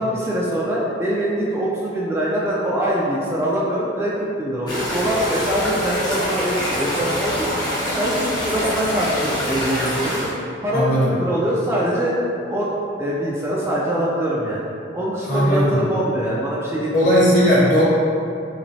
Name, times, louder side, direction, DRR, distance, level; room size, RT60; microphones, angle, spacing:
voice 1, 0.0-7.4 8.0-10.2 10.6-12.7 13.0-14.6 14.9-17.1, equal, 15° right, -6 dB, 0.3 m, -23 dB
sound 1, 4.7-10.3, equal, 20° left, 0.7 m, -25 dB
voice 2, 15.2-15.7 16.9-17.8, equal, 50° left, -9 dB, 1.0 m, -16 dB
3.2 x 3.0 x 2.6 m, 2.5 s
head